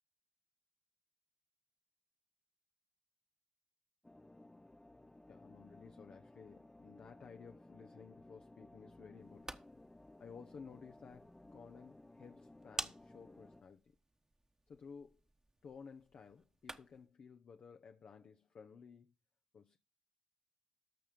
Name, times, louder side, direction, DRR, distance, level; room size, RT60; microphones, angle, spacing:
sound 1, 4.0-13.6, left 2 dB, 15° left, 0.8 m, -59 dB
voice 1, 5.3-9.6 10.2-13.9 14.7-15.2 15.6-19.1 19.5-19.8, left 6 dB, 65° left, 0.8 m, -55 dB
sound 2, 9.1-17.1, right 2 dB, 20° right, 1.1 m, -52 dB
13.5 x 5.7 x 5.1 m
supercardioid pair, 40°, 3 cm